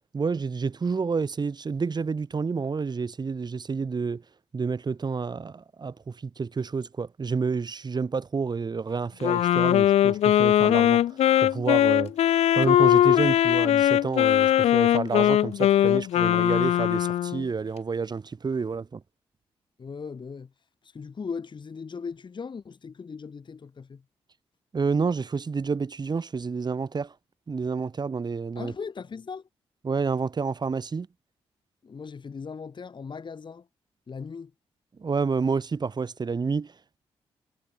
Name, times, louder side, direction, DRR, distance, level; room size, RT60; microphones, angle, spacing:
voice 1, 0.1-4.2 4.5-11.0 11.4-12.1 12.6-19.0 24.7-27.1 27.5-28.7 29.8-31.1 35.0-36.7, right 5 dB, 40° right, 1.1 m, -29 dB
Wind instrument woodwind instrument, 9.2-17.4, left 12 dB, 70° left, 0.4 m, -21 dB
voice 2, 19.8-20.5 20.8-24.0 28.5-29.5 31.8-33.7 34.1-34.5, left 5 dB, 45° left, 1.2 m, -38 dB
supercardioid pair, 55°, 11 cm